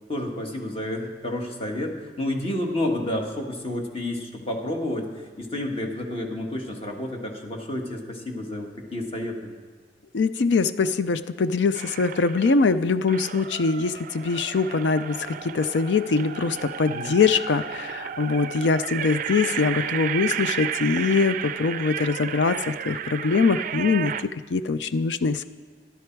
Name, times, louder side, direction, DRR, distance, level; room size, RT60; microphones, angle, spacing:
voice 1, 0.1-5.1 5.4-9.5 16.8-17.1, left 1 dB, 35° left, 2 dB, 1.7 m, -30 dB
voice 2, 10.1-24.1 24.5-25.4, left 4 dB, 80° left, 13 dB, 0.5 m, -23 dB
sound 1, 11.7-12.6 13.1-24.3, right 8 dB, 50° right, 0.4 m, -33 dB
13.0 x 12.0 x 4.6 m, 1.4 s
head